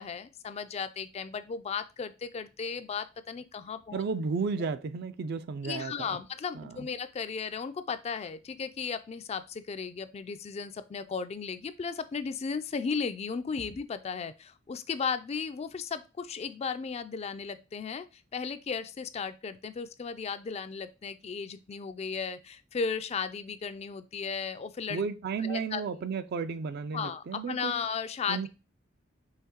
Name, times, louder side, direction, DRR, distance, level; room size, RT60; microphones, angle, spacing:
voice 1, 0.0-4.0 5.6-25.0 25.4-25.8 26.9-28.5, left 5 dB, 30° left, 0.3 m, -35 dB
voice 2, 3.9-6.2 6.6-6.9 24.9-27.7 28.3-28.5, right 5 dB, 55° right, 0.4 m, -33 dB
5.7 x 3.0 x 2.9 m
head